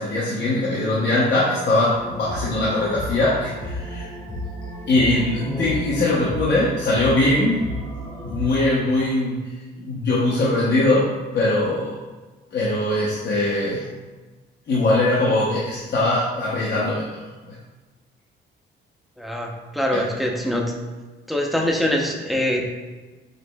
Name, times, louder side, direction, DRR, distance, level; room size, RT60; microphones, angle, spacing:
voice 1, 0.0-4.1 4.9-7.6 8.2-9.4 9.8-11.1 11.3-12.0 12.5-13.9 14.7-17.6 19.9-20.1, left 2 dB, 60° left, -6 dB, 0.8 m, -21 dB
sound 1, 2.0-8.6, equal, 20° left, 1.0 m, -33 dB
voice 2, 19.2-20.6 21.3-22.6, left 1 dB, ahead, 0 dB, 0.6 m, -24 dB
5.0 x 3.1 x 2.2 m, 1.3 s
cardioid pair, 90°, 20 cm